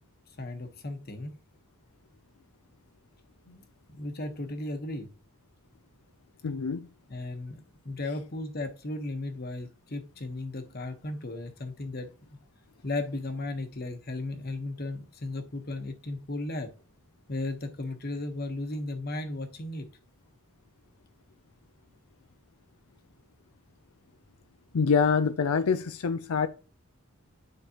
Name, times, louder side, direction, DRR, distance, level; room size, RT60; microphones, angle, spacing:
voice 1, 0.4-1.4 3.4-3.6 3.9-5.1 7.1-12.4 12.8-16.7 17.3-19.9, left 2 dB, 45° left, 1.2 m, -35 dB
voice 2, 6.4-6.9 24.7-26.5, left 5 dB, 85° left, 0.5 m, -25 dB
9.7 x 5.0 x 2.9 m
head